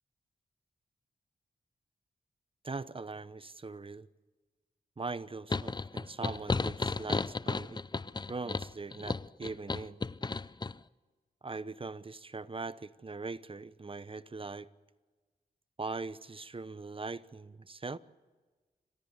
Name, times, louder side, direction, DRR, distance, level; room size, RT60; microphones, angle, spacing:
voice 1, 2.6-4.1 5.0-7.8 8.3-10.0 11.4-14.7 15.8-18.0, right 3 dB, 35° right, 0.9 m, -41 dB
sound 1, 5.5-10.7, left 3 dB, 25° left, 0.6 m, -34 dB
27.5 x 14.0 x 8.2 m
cardioid pair, 50°, 16 cm